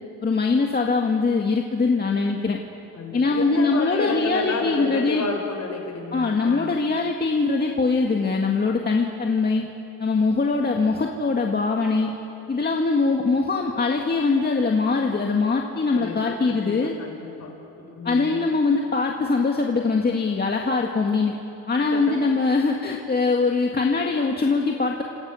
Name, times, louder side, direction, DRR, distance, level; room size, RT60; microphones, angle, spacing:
voice 1, 0.2-2.6 3.1-5.2 6.1-9.6 10.0-12.2 12.5-17.0 18.0-21.3 21.7-25.0, left 4 dB, 30° left, 1 dB, 2.0 m, -22 dB
voice 2, 2.9-6.8 15.9-16.7 17.0-18.4 21.9-22.1, left 3 dB, 50° left, 3 dB, 6.0 m, -31 dB
29.5 x 27.0 x 6.5 m, 2.9 s
cardioid pair, 95°, 34 cm